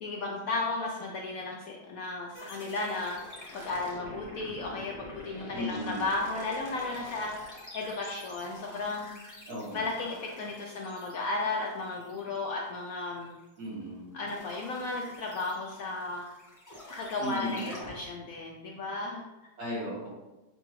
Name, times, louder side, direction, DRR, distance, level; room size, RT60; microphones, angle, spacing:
voice 1, 0.0-3.2 3.5-7.3 7.7-9.1 9.7-13.3 14.1-16.2 16.9-19.2, left 3 dB, 70° left, -1 dB, 0.8 m, -34 dB
sound 1, 2.3-13.8 14.3-18.0, left 1 dB, 15° left, 0.6 m, -47 dB
voice 2, 5.5-6.0 9.5-9.9 13.6-14.2 17.2-17.7 19.6-20.1, equal, 60° right, -6 dB, 2.1 m, -35 dB
6.5 x 2.6 x 3.0 m, 1.1 s
omnidirectional pair, 1.9 m